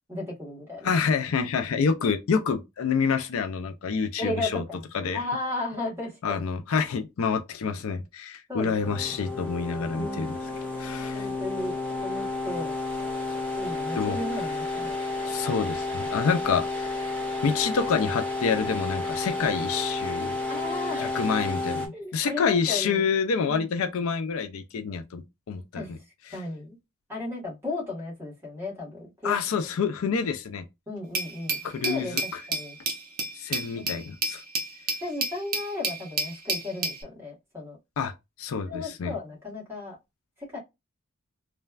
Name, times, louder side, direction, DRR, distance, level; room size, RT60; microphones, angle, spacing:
voice 1, 0.1-0.9 4.2-4.8 5.1-6.4 8.5-8.8 9.9-10.3 11.1-12.8 13.5-14.9 20.5-21.2 21.9-23.0 23.5-23.6 25.8-25.9 26.3-26.7 27.1-29.4 30.9-32.8 33.7-33.9 35.0-37.8 38.6-40.0 40.5-40.6, left 2 dB, 10° right, 1.3 m, -34 dB
voice 2, 0.8-4.6 4.9-5.2 6.2-10.4 10.8-11.3 13.3-13.4 13.9-14.2 15.3-16.9 17.4-20.4 21.0-26.0 26.3-26.4 29.2-30.7 31.6-32.4 33.3-34.4 38.0-38.1 38.4-39.1, left 5 dB, 65° left, 0.4 m, -27 dB
sound 1, 8.8-21.9, left 3 dB, 5° left, 0.6 m, -31 dB
Glass, 31.1-37.0, right 3 dB, 40° right, 0.6 m, -31 dB
3.1 x 2.2 x 2.3 m
head